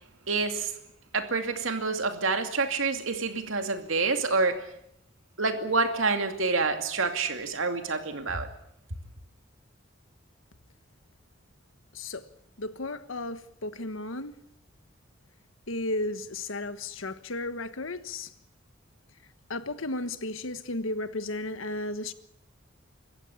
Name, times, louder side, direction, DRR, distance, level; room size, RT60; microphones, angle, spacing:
voice 1, 0.3-0.7 1.1-4.7 5.4-8.5, right 4 dB, 90° right, 2.4 m, -27 dB
voice 2, 11.9-12.2 12.6-14.4 15.7-18.3 19.5-22.1, left 2 dB, 90° left, 1.4 m, -34 dB
25.5 x 15.0 x 8.5 m
head